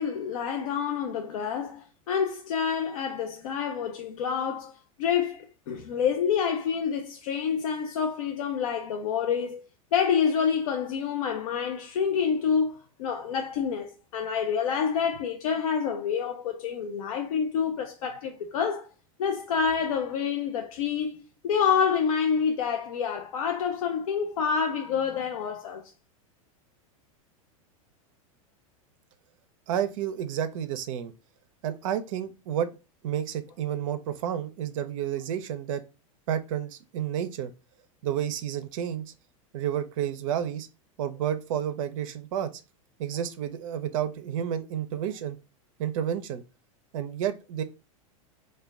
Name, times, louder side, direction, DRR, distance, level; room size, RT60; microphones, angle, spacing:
voice 1, 0.0-4.7 5.0-9.6 9.9-18.9 19.2-25.8, left 7 dB, 75° left, 0.4 m, -28 dB
voice 2, 29.7-31.1 31.6-32.7 33.0-35.8 36.3-37.5 38.0-39.0 39.5-40.7 41.0-42.5 43.0-45.4 45.8-46.4 46.9-47.6, right 10 dB, 65° right, 0.4 m, -30 dB
2.1 x 2.1 x 3.4 m
hypercardioid pair, 100°, 18 cm